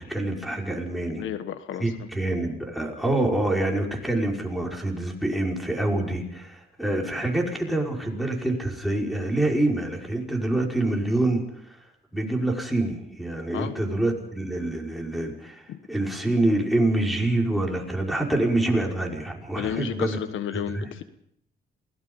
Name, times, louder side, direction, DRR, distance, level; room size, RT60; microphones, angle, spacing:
voice 1, 0.0-1.2 1.8-11.8 12.1-20.2 20.5-20.9, right 1 dB, ahead, -1 dB, 5.4 m, -26 dB
voice 2, 1.1-2.1 13.5-13.8 15.7-15.8 19.5-21.0, left 10 dB, 80° left, 10 dB, 1.4 m, -32 dB
28.0 x 18.5 x 5.5 m, 0.72 s
cardioid pair, 90°, 20 cm